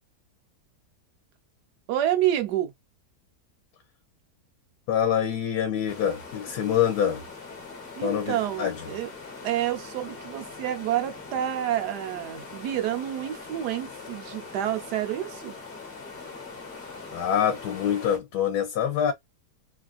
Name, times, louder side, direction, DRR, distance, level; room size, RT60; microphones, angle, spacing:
voice 1, 1.9-2.7 8.0-9.1 9.4-15.5, right 12 dB, 90° right, 1.3 m, -28 dB
voice 2, 4.9-7.2 8.0-8.8 17.1-19.1, left 9 dB, 75° left, 1.2 m, -25 dB
sound 1, 5.9-18.2, left 4 dB, 40° left, 1.2 m, -42 dB
3.3 x 2.4 x 2.4 m
omnidirectional pair, 1.7 m